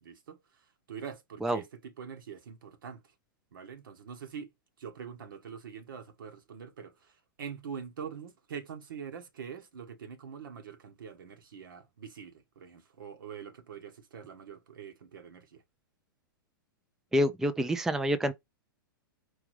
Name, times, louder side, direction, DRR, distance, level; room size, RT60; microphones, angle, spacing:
voice 1, 0.0-3.1 3.5-4.5 4.8-15.6, right 7 dB, 70° right, 1.2 m, -44 dB
voice 2, 17.1-18.3, equal, 5° right, 0.4 m, -27 dB
4.8 x 3.4 x 3.2 m
hypercardioid pair, 110°, 12 cm